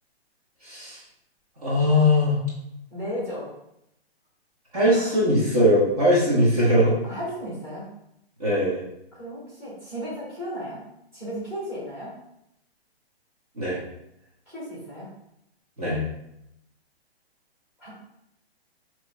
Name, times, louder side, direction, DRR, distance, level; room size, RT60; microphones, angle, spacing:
voice 1, 0.6-1.0 1.6-2.4 4.7-7.0 8.4-8.8 13.6-13.8 15.8-16.0, left 1 dB, 35° right, -7 dB, 1.2 m, -20 dB
voice 2, 2.9-3.5 4.9-5.1 7.0-7.9 9.1-10.8 11.1-12.1 14.5-15.1 17.8-17.9, equal, 5° right, -10 dB, 1.4 m, -34 dB
5.9 x 3.0 x 2.3 m, 0.81 s
hypercardioid pair, 175°, 32 cm